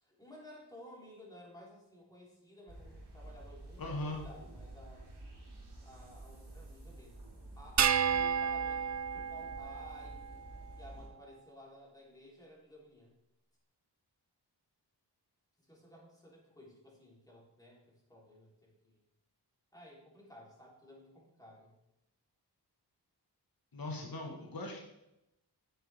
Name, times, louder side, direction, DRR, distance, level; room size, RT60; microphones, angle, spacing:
voice 1, 0.0-5.1 5.8-10.4 10.8-13.1 15.6-19.0 19.7-21.8, left 1 dB, 10° left, -4 dB, 3.5 m, -55 dB
sound 1, 2.7-11.1, right 1 dB, 70° right, 3.3 m, -51 dB
voice 2, 3.8-4.2 23.7-24.8, left 2 dB, 55° left, 0 dB, 1.6 m, -39 dB
sound 2, 7.8-10.3, right 7 dB, 45° right, 0.4 m, -31 dB
9.3 x 9.1 x 3.5 m, 0.89 s
wide cardioid pair, 90°, 42 cm